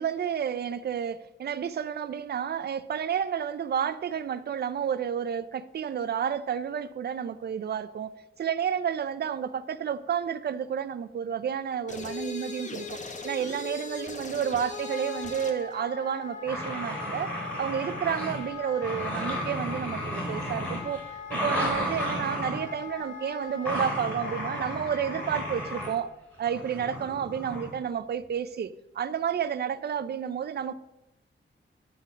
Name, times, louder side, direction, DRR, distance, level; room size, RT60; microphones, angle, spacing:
voice 1, 0.0-8.1 8.4-13.0 13.2-21.0 21.3-26.1 26.4-30.7, right 8 dB, 50° right, 0.4 m, -31 dB
sound 1, 11.9-15.6, left 4 dB, 35° left, 0.8 m, -38 dB
Wind instrument woodwind instrument, 14.7-26.0, left 6 dB, 65° left, 2.0 m, -42 dB
sound 2, 16.4-18.5 18.8-22.6 23.6-25.9 26.5-27.8, equal, 5° left, 3.0 m, -33 dB
9.5 x 4.0 x 5.4 m
wide cardioid pair, 130°, 21 cm